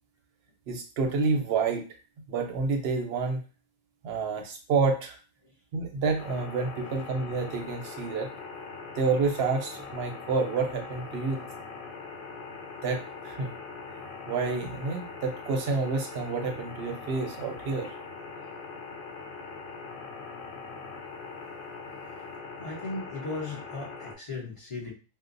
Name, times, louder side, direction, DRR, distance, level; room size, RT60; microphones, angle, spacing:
voice 1, 0.7-1.9 2.3-3.4 4.0-5.2 5.7-8.3 8.9-11.4 12.8-13.5 14.3-17.9, right 4 dB, 60° right, 3 dB, 0.7 m, -29 dB
sound 1, 6.2-24.1, left 4 dB, 90° left, 1.0 m, -42 dB
voice 2, 22.6-24.9, left 3 dB, 30° left, -3 dB, 0.7 m, -37 dB
2.7 x 2.1 x 2.5 m, 0.34 s
omnidirectional pair, 1.4 m